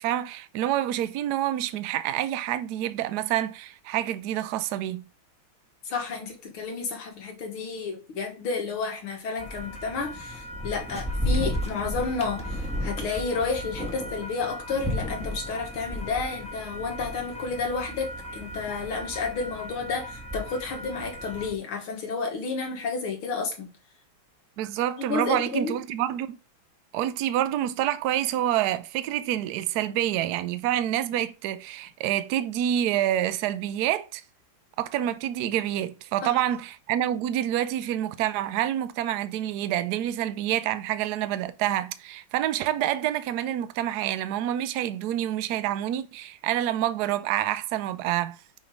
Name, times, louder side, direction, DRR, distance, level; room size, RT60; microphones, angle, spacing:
voice 1, 0.0-5.0 24.6-26.4 26.9-34.2 34.8-48.4, right 12 dB, 80° right, 0.9 m, -27 dB
voice 2, 5.8-23.7 25.0-25.8 36.2-36.3, left 4 dB, 85° left, 2.4 m, -31 dB
sound 1, 9.4-21.5, equal, 5° left, 0.8 m, -34 dB
6.0 x 3.3 x 5.3 m
omnidirectional pair, 2.3 m